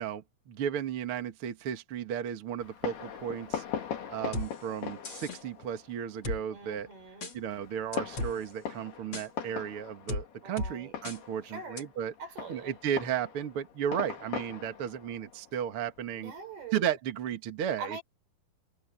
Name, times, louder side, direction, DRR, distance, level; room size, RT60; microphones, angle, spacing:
voice 1, 0.0-3.6 4.1-6.9 7.3-12.1 12.5-16.3 16.7-18.0, right 9 dB, 50° right, 1.9 m, -34 dB
Fireworks, 2.6-16.8, left 8 dB, 85° left, 4.9 m, -41 dB
sound 1, 4.3-4.5 5.0-5.4 6.2-6.4 7.2-7.3 7.9-8.3 9.1-9.3 10.1-10.2 10.6-10.7 11.0-11.2 11.8-11.9, left 2 dB, 30° left, 3.6 m, -34 dB
voice 2, 6.5-7.4 10.4-11.0 11.4-11.9 12.2-12.8 16.1-16.9 17.8-18.0, right 4 dB, 80° right, 7.2 m, -43 dB
omnidirectional pair, 4.4 m